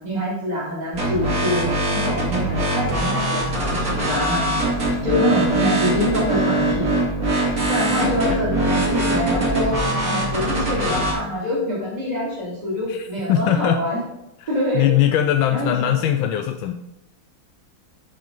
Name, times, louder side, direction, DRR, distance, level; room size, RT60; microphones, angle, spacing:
voice 1, 0.0-4.4 5.0-6.9 7.7-14.0 14.5-14.9 15.5-16.2, left 1 dB, 20° right, -8 dB, 3.0 m, -25 dB
sound 1, 0.9-11.1, right 1 dB, 45° right, 3.0 m, -22 dB
voice 2, 7.9-8.4 12.9-13.8 14.4-14.5 14.7-16.7, left 10 dB, 85° left, 7 dB, 1.4 m, -21 dB
8.6 x 5.5 x 5.4 m, 0.90 s
omnidirectional pair, 2.1 m